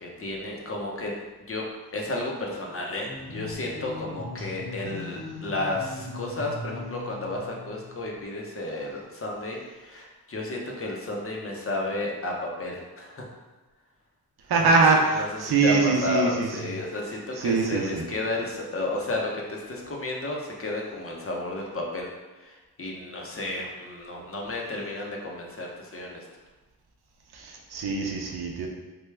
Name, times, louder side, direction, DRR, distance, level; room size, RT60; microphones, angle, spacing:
voice 1, 0.0-1.1 1.5-1.6 1.9-13.2 14.6-26.2, left 2 dB, 35° left, -1 dB, 0.7 m, -32 dB
sound 1, 3.0-8.2, left 2 dB, 75° left, 1.0 m, -39 dB
voice 2, 14.5-16.7 17.4-18.0 27.3-28.7, right 3 dB, 70° right, 1 dB, 0.6 m, -23 dB
3.3 x 2.2 x 3.2 m, 1.2 s
cardioid pair, 75°, 39 cm